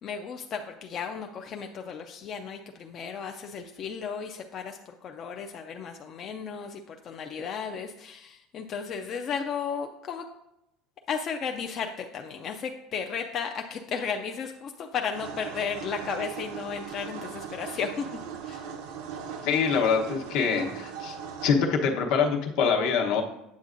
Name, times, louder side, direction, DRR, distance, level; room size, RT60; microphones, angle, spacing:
voice 1, 0.0-10.2 11.1-18.1 18.4-18.7, left 6 dB, 35° left, 4 dB, 0.4 m, -34 dB
sound 1, 15.1-21.5, right 7 dB, 85° right, 0.8 m, -39 dB
voice 2, 19.4-21.2 21.4-23.2, left 6 dB, 65° left, 2 dB, 1.0 m, -24 dB
8.2 x 7.2 x 2.5 m, 0.85 s
cardioid pair, 160°, 0 cm